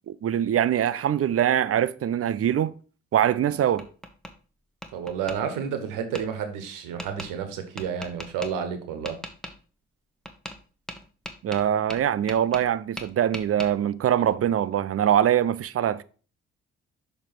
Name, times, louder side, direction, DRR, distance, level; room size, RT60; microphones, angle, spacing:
voice 1, 0.1-2.7 3.1-3.9 11.4-16.0, right 10 dB, 45° right, 0.6 m, -23 dB
Tap, 3.3-4.3 4.8-5.4 6.1-6.2 7.0-7.3 7.8-8.5 9.1-9.5 10.3-10.6 10.9-12.7 13.0-13.7, equal, ahead, 1.2 m, -38 dB
voice 2, 4.9-9.2, right 7 dB, 75° right, 1.2 m, -31 dB
6.6 x 3.3 x 5.8 m
hypercardioid pair, 45°, 32 cm